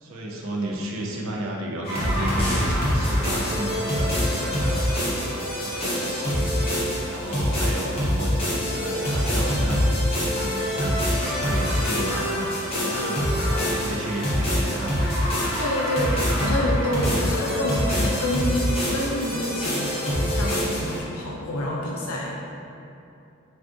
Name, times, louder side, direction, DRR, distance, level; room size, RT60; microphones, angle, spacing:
voice 1, 0.0-12.5 12.7-15.1, right 1 dB, 70° right, -1 dB, 0.4 m, -33 dB
sound 1, 1.8-21.0, equal, 25° left, 0.7 m, -25 dB
voice 2, 15.6-22.4, left 1 dB, 85° left, -3 dB, 0.5 m, -28 dB
3.5 x 2.4 x 2.4 m, 2.7 s
head